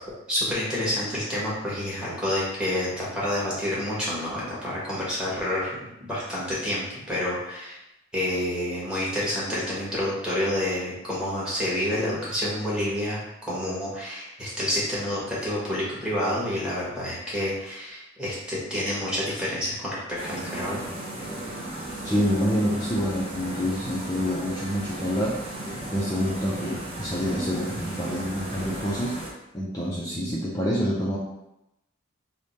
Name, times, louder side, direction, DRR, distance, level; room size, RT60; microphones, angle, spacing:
voice 1, 0.3-7.8 8.1-20.9, left 1 dB, 5° right, -8 dB, 1.1 m, -28 dB
sound 1, 20.2-29.3, right 1 dB, 30° right, 0.7 m, -35 dB
voice 2, 22.0-25.4 25.9-29.2 29.5-31.2, equal, 20° left, -6 dB, 0.4 m, -27 dB
3.3 x 2.1 x 4.1 m, 0.88 s
head